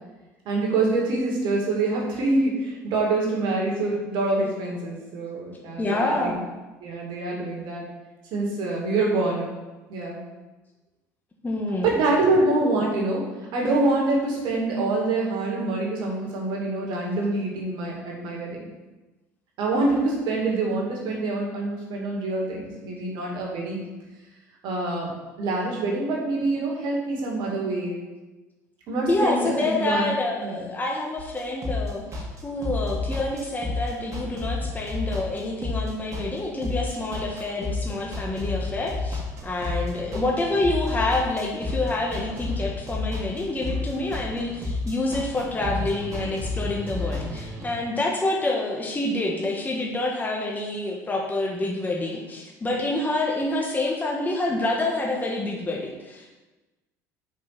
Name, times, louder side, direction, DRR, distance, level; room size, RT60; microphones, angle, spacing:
voice 1, 0.5-6.3 6.8-7.8 8.3-9.5 9.9-10.2 11.8-13.3 13.5-18.6 19.6-23.8 24.6-25.1 25.4-28.0 28.9-30.2 30.4-30.6, right 2 dB, 60° right, -3 dB, 2.4 m, -25 dB
voice 2, 5.8-6.4 11.4-12.0 29.1-56.4, left 2 dB, 20° left, -1 dB, 1.4 m, -27 dB
sound 1, 31.2-47.6, left 3 dB, 35° right, 2.1 m, -31 dB
5.7 x 4.9 x 5.9 m, 1.1 s
hypercardioid pair, 70°, 9 cm